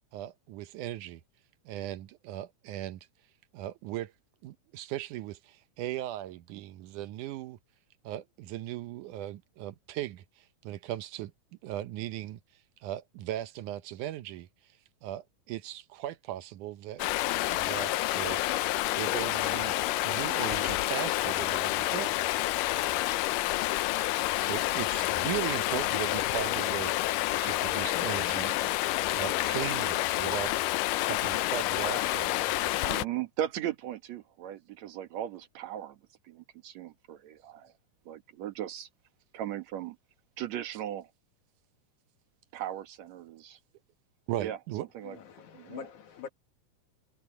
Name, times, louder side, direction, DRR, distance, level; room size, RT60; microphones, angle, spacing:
voice 1, 0.1-1.2 1.7-3.0 3.5-4.1 4.4-7.6 8.0-11.3 11.6-12.4 12.8-14.5 15.0-17.0 17.5-18.4 19.0-19.8 20.0-22.2 24.4-28.6 29.1-32.8 44.3-44.9, right 13 dB, 75° right, 2.2 m, -38 dB
Stream, 17.0-33.0, left 17 dB, 85° left, 2.3 m, -29 dB
voice 2, 32.9-36.0 36.3-37.7 38.1-38.9 39.3-40.0 40.4-41.1 42.5-43.6 44.4-44.6 44.9-45.2 45.5-45.9, right 11 dB, 60° right, 2.6 m, -37 dB
voice 3, 45.0-46.3, left 8 dB, 65° left, 3.4 m, -45 dB
omnidirectional pair, 3.7 m